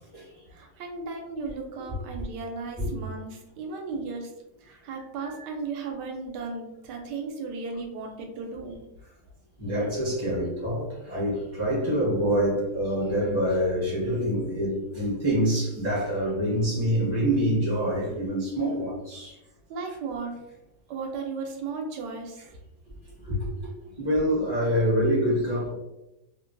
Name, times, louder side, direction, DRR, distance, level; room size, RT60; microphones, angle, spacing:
voice 1, 0.5-4.3 4.6-8.8 19.7-20.4 20.9-22.4, right 4 dB, 85° right, 2 dB, 1.2 m, -35 dB
voice 2, 9.6-19.4 23.2-23.5 24.0-25.7, equal, 30° left, -8 dB, 0.5 m, -26 dB
3.1 x 2.2 x 2.4 m, 0.91 s
omnidirectional pair, 1.8 m